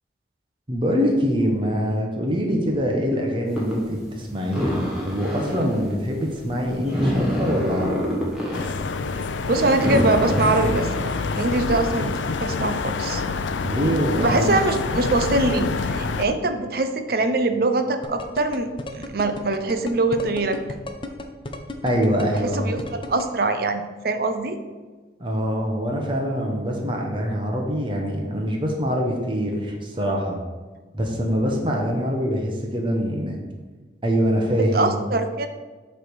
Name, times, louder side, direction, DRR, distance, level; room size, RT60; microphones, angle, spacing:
voice 1, 0.7-3.8 4.1-8.1 13.6-14.5 21.8-22.9 25.2-30.4 30.9-33.4 34.0-35.0, equal, 25° right, 0 dB, 1.0 m, -24 dB
sound 1, 3.5-11.8, equal, ahead, 1.4 m, -28 dB
sound 2, 8.5-16.2, left 4 dB, 90° left, 0.5 m, -27 dB
voice 2, 9.5-13.2 14.2-20.6 22.5-24.6 34.6-35.5, right 2 dB, 55° right, 8 dB, 0.6 m, -23 dB
sound 3, 18.0-23.2, left 2 dB, 30° left, 0.6 m, -33 dB
7.6 x 3.4 x 6.2 m, 1.3 s
head